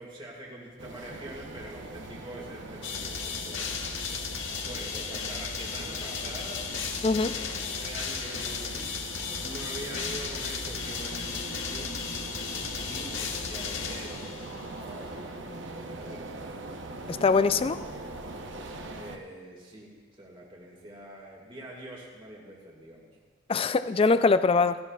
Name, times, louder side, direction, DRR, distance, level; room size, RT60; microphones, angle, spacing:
voice 1, 0.0-3.9 4.6-6.7 7.1-7.4 7.8-8.9 9.4-11.9 12.5-16.7 19.0-23.1, right 1 dB, 25° right, -2 dB, 2.1 m, -44 dB
Saint Sulpice Paris, 0.8-19.2, right 2 dB, 70° right, 0.9 m, -41 dB
sound 1, 2.8-14.7, left 6 dB, 80° left, 1.2 m, -35 dB
voice 2, 7.0-7.3 17.1-17.8 23.5-24.8, left 4 dB, 30° left, 12 dB, 0.3 m, -22 dB
16.5 x 15.5 x 2.4 m, 1.5 s
head